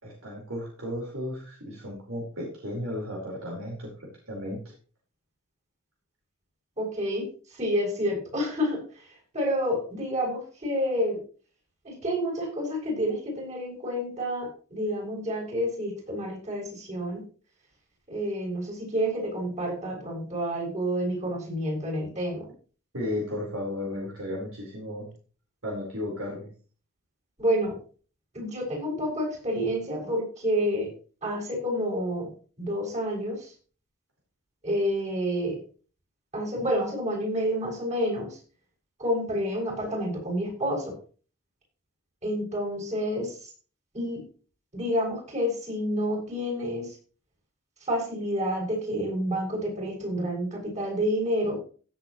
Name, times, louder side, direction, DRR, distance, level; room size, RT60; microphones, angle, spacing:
voice 1, 0.0-4.6 22.9-25.1 25.6-26.5, left 1 dB, 70° right, -3 dB, 4.7 m, -34 dB
voice 2, 6.8-7.2 7.6-8.8 9.3-11.2 11.9-17.2 18.1-22.4 27.4-27.7 28.4-30.9 31.2-32.3 32.6-33.4 34.6-35.6 36.3-38.3 39.0-40.8 42.2-43.3 43.9-44.2 44.7-46.9 47.9-51.6, equal, 35° right, -2 dB, 7.0 m, -29 dB
17.0 x 8.0 x 3.2 m, 0.39 s
head